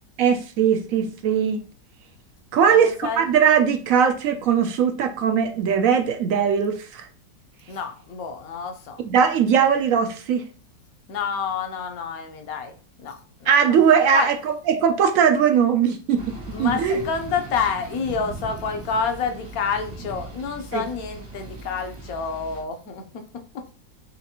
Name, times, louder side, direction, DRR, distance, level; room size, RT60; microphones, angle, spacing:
voice 1, 0.2-1.7 2.5-7.0 9.0-10.4 13.5-17.0 20.7-20.9, right 7 dB, 70° right, 7 dB, 0.8 m, -20 dB
voice 2, 2.6-3.2 7.7-9.0 11.1-12.7 13.0-13.5 14.1-14.3 16.5-23.0 23.5-23.7, left 6 dB, 65° left, 5 dB, 1.2 m, -28 dB
sound 1, 16.1-22.6, right 2 dB, 90° right, 2.4 m, -39 dB
5.7 x 3.1 x 2.9 m, 0.37 s
omnidirectional pair, 1.8 m